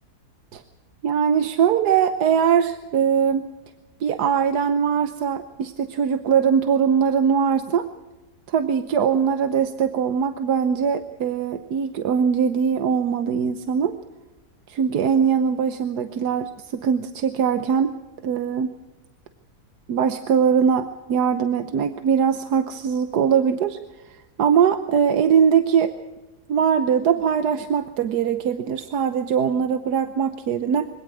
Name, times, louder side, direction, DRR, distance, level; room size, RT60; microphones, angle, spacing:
voice 1, 1.0-3.5 4.0-7.9 8.5-13.9 14.7-17.9 18.2-18.8 19.9-23.8 24.4-25.9 26.5-30.9, right 7 dB, 85° right, 9 dB, 1.5 m, -21 dB
24.0 x 17.5 x 6.3 m, 1.1 s
omnidirectional pair, 1.7 m